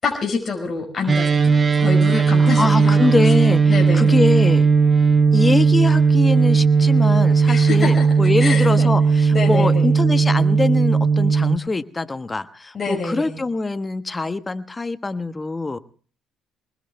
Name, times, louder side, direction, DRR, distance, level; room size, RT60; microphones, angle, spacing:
voice 1, 0.0-3.1 3.7-4.2 7.5-8.1 8.4-8.9 9.3-9.9 12.7-13.4, left 4 dB, 40° left, 0 dB, 5.5 m, -26 dB
sound 1, 1.1-11.6, right 5 dB, 35° right, 0.9 m, -16 dB
voice 2, 2.4-4.7 5.3-15.8, left 3 dB, 20° left, 11 dB, 1.2 m, -23 dB
29.5 x 20.5 x 2.3 m, 0.42 s
hypercardioid pair, 55°, 0 cm